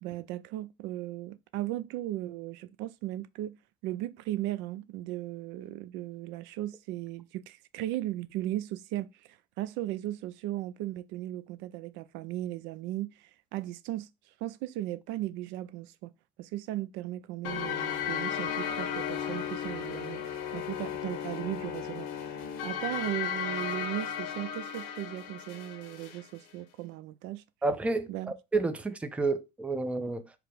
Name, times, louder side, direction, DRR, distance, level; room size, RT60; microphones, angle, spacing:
voice 1, 0.0-3.6 3.8-14.1 14.4-16.1 16.4-22.4 22.6-27.4 28.1-28.3, right 14 dB, 70° right, 0.4 m, -37 dB
sound 1, 17.4-26.2, left 8 dB, 75° left, 0.9 m, -35 dB
voice 2, 27.6-30.3, right 3 dB, 5° right, 0.4 m, -30 dB
4.8 x 2.0 x 4.5 m
cardioid pair, 120°, 19 cm